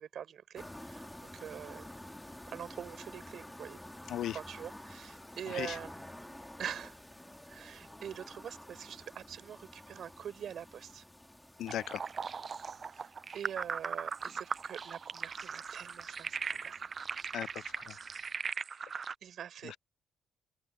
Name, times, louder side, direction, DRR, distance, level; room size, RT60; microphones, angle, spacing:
voice 1, 0.0-1.9 2.5-3.8 4.3-5.9 6.2-6.3 6.6-7.0 7.5-11.0 12.8-16.8 18.7-19.8, right 9 dB, 65° right, 6.1 m, -44 dB
sound 1, 0.6-18.4, left 1 dB, 5° left, 1.9 m, -51 dB
voice 2, 4.1-4.4 5.5-5.8 11.6-12.0 17.3-18.0 19.6-19.8, left 12 dB, 75° left, 0.3 m, -37 dB
sound 2, 11.7-19.1, right 6 dB, 40° right, 0.5 m, -39 dB
open air
cardioid pair, 90°, 0 cm